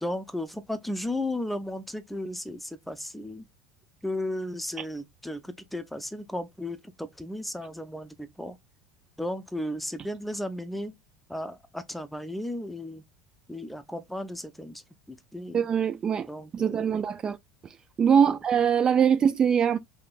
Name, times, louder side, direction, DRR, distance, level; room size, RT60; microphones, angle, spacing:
voice 1, 0.0-3.4 4.0-8.6 9.2-10.9 11.3-13.0 13.5-14.8 15.1-15.7 16.3-17.0 18.3-18.4, left 1 dB, 5° left, 0.6 m, -35 dB
voice 2, 15.5-16.3 16.5-17.4 18.0-19.8, right 7 dB, 35° right, 0.3 m, -22 dB
3.6 x 2.8 x 2.4 m
hypercardioid pair, 80°, 2 cm